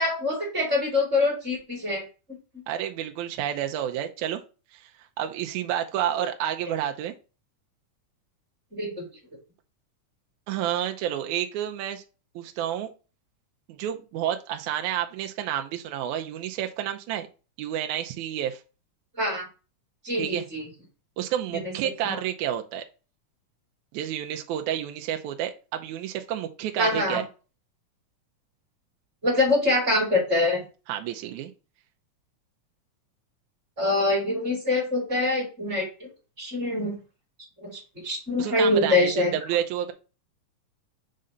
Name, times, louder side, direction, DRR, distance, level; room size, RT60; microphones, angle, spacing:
voice 1, 0.0-2.1 8.7-9.0 19.2-19.5 20.0-20.6 21.5-21.7 22.0-22.2 26.8-27.2 29.2-30.6 33.8-36.1 36.4-37.0 37.6-39.3, left 2 dB, 25° right, -1 dB, 2.4 m, -25 dB
voice 2, 2.7-4.4 4.7-4.9 5.2-7.1 10.5-12.0 12.4-12.9 13.7-17.3 17.6-18.6 20.2-20.5 21.2-22.9 23.9-27.3 30.9-31.5 38.4-39.9, right 11 dB, 80° right, 5 dB, 2.0 m, -30 dB
5.4 x 3.8 x 5.4 m, 0.33 s
omnidirectional pair, 3.6 m